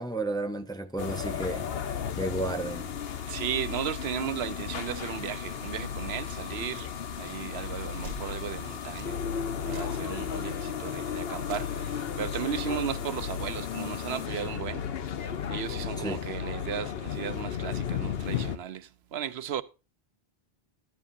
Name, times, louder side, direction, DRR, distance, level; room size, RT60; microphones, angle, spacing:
voice 1, 0.0-1.6 2.2-2.9 16.0-16.2, right 2 dB, 5° left, 0.6 m, -32 dB
sound 1, 1.0-18.6, left 8 dB, 75° left, 1.0 m, -34 dB
voice 2, 3.3-6.9 7.2-9.2 9.6-14.9 15.5-19.6, right 9 dB, 90° right, 1.0 m, -35 dB
sound 2, 6.8-6.9 8.0-8.3 9.0-9.1 9.7-10.0 10.4-10.6 11.4-11.8, right 2 dB, 40° right, 1.4 m, -44 dB
14.5 x 10.5 x 2.6 m
omnidirectional pair, 1.0 m